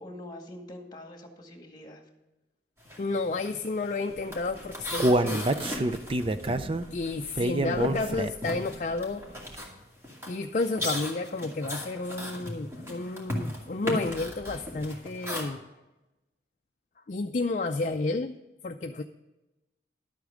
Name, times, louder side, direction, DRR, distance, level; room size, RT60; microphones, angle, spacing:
voice 1, 0.0-2.0, left 1 dB, 25° left, 3 dB, 2.0 m, -44 dB
sound 1, 2.8-3.1 3.3-7.4 7.7-15.4, left 1 dB, 15° right, 2.3 m, -37 dB
voice 2, 3.0-5.5 6.9-9.4 10.3-15.6 17.1-18.3 18.6-19.0, left 3 dB, 45° left, 5 dB, 0.4 m, -31 dB
Human voice, 4.4-8.6 9.0-9.1 9.5-9.6, right 1 dB, 30° right, 0.5 m, -27 dB
12.0 x 8.2 x 5.0 m, 1.0 s
head